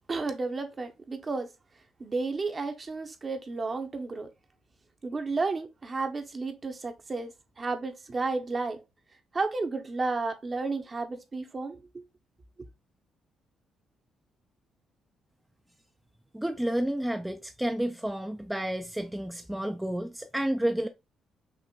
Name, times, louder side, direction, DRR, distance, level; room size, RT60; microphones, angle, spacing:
voice 1, 0.1-1.5 2.0-4.3 5.0-8.8 9.3-12.0, right 3 dB, 35° right, 0.8 m, -32 dB
voice 2, 16.3-20.9, right 1 dB, 5° right, 0.3 m, -30 dB
5.9 x 2.5 x 2.2 m
cardioid pair, 90°, 0 cm